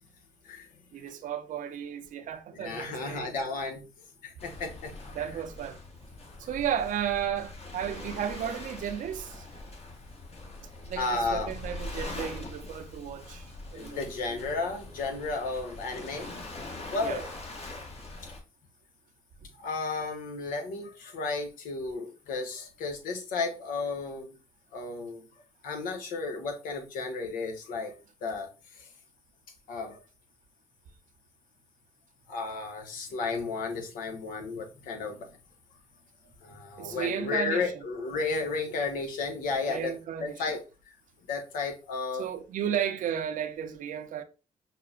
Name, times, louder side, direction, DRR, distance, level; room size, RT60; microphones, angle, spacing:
voice 1, 0.9-3.3 5.1-5.8 6.4-9.4 10.9-14.0 17.0-17.2 19.4-19.5 36.8-37.7 39.7-40.4 42.2-44.2, right 9 dB, 70° right, 0.5 m, -34 dB
voice 2, 2.5-3.9 4.2-5.2 11.0-11.5 13.7-16.6 16.9-17.3 18.2-18.3 19.6-24.4 24.7-25.3 25.6-27.9 28.2-28.9 29.7-30.0 32.3-35.3 36.4-39.9 40.2-40.6 41.3-42.3, left 4 dB, 85° left, 0.9 m, -33 dB
Waves surf, 4.4-18.4, left 2 dB, 45° left, 1.2 m, -42 dB
5.7 x 2.1 x 2.4 m
cardioid pair, 75°, 14 cm